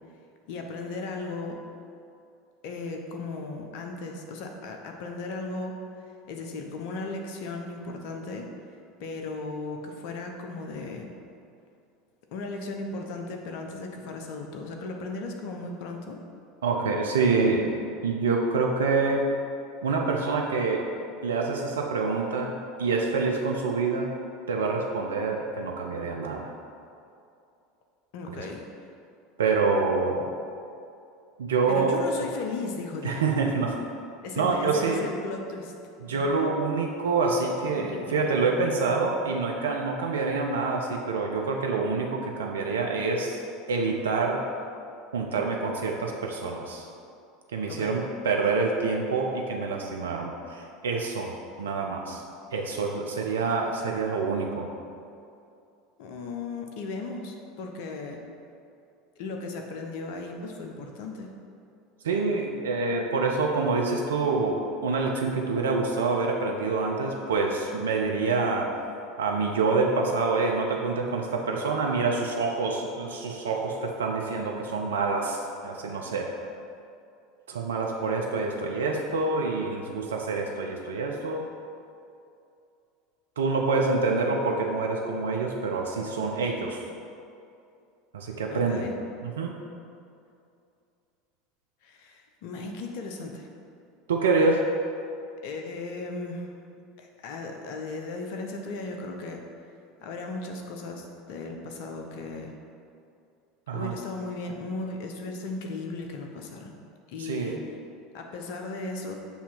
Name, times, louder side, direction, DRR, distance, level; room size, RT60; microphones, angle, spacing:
voice 1, 0.5-1.6 2.6-5.8 6.3-8.5 9.0-11.1 12.3-16.2 28.1-28.6 31.7-33.3 34.2-35.7 36.1-36.3 37.8-38.0 47.7-48.0 56.0-58.2 59.2-61.3 88.5-88.9 91.8-93.5 95.4-96.5 97.0-99.4 100.0-102.5 103.7-106.8 107.1-107.6 108.1-109.2, left 3 dB, 65° left, 3 dB, 0.8 m, -36 dB
voice 2, 16.6-17.7 18.0-19.2 19.8-20.9 21.2-24.1 24.5-26.5 29.4-30.3 31.4-32.0 33.0-33.8 34.4-35.1 36.1-43.4 43.7-44.4 45.1-46.9 47.5-52.2 52.5-54.7 62.0-68.7 69.2-76.4 77.5-81.5 83.4-86.8 88.1-88.9 89.2-89.5 94.1-94.6 103.7-103.9 107.2-107.6, right 4 dB, 80° right, 1 dB, 0.5 m, -26 dB
7.0 x 2.8 x 5.9 m, 2.5 s
hypercardioid pair, 80°, 0 cm